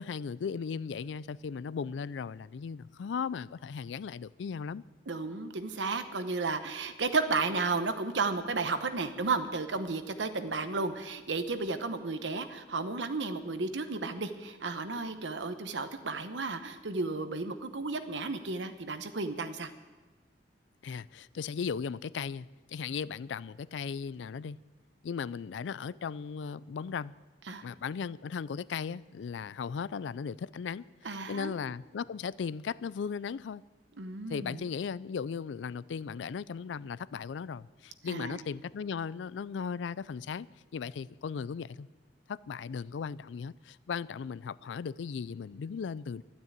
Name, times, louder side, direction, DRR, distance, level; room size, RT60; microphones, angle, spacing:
voice 1, 0.0-4.8 20.8-24.6 25.0-27.1 27.6-33.6 34.3-40.5 40.7-41.9 42.3-46.2, left 6 dB, 90° left, 0.4 m, -37 dB
voice 2, 5.1-19.7 27.5-27.6 31.0-31.5 34.0-34.6 38.0-38.4, right 3 dB, 90° right, 1.0 m, -33 dB
12.0 x 9.4 x 8.5 m
head